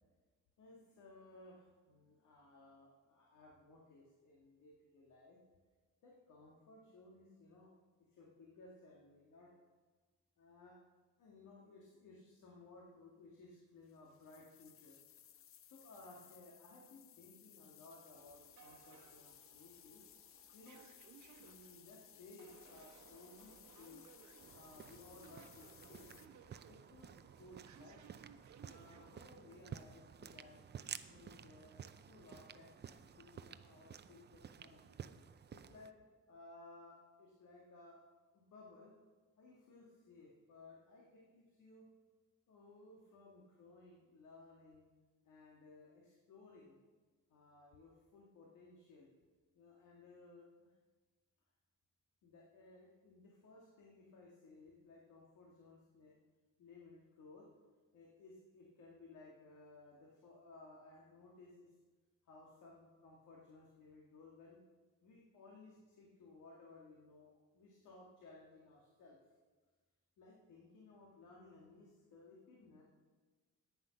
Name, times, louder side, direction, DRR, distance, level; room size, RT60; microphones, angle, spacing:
voice 1, 0.6-5.4 6.0-7.7 8.0-9.5 10.4-10.8 11.2-15.0 15.6-20.0 20.5-20.8 21.4-24.1 24.5-26.3 26.7-28.0 28.6-35.0 35.5-35.9 36.3-38.0 38.3-38.9 39.4-41.9 42.5-44.9 45.2-46.8 47.3-49.1 49.5-50.7 52.2-56.1 56.6-57.5 57.9-61.7 62.2-64.6 65.0-69.2 70.2-72.8, left 3 dB, 80° left, -2 dB, 2.2 m, -59 dB
sound 1, 13.8-26.3, left 10 dB, 50° left, 0.5 m, -62 dB
sound 2, 18.1-29.3, right 7 dB, 70° right, 1.1 m, -63 dB
sound 3, 24.4-35.9, right 8 dB, 35° right, 0.6 m, -53 dB
10.0 x 9.5 x 5.9 m, 1.3 s
cardioid pair, 90°, 30 cm